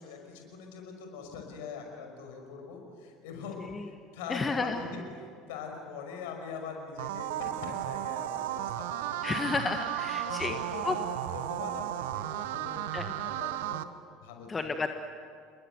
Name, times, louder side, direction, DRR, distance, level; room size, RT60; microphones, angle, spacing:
voice 1, 0.0-9.3 9.9-10.0 10.3-13.8 14.2-14.7, left 5 dB, 65° left, 3 dB, 5.6 m, -42 dB
voice 2, 4.3-4.8 9.2-10.5 10.8-10.9 12.9-13.1 14.5-14.9, left 4 dB, 20° left, 6 dB, 1.6 m, -31 dB
sound 1, 7.0-13.8, right 13 dB, 65° right, 0.9 m, -34 dB
29.0 x 21.5 x 8.1 m, 2.1 s
figure-of-eight pair, 65°, 0 cm